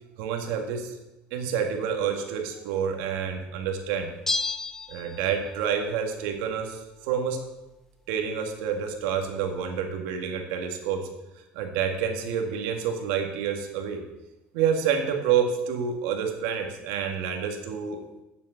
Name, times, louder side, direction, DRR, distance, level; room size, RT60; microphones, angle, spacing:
voice 1, 0.2-1.0 1.3-4.1 4.9-7.4 8.1-11.1 11.5-14.0 14.5-18.0, right 7 dB, 80° right, 4 dB, 1.9 m, -28 dB
Bell, 4.3-5.7 5.9-6.0, left 3 dB, 10° left, 0.6 m, -31 dB
8.4 x 7.2 x 7.9 m, 0.99 s
cardioid pair, 145°, 4 cm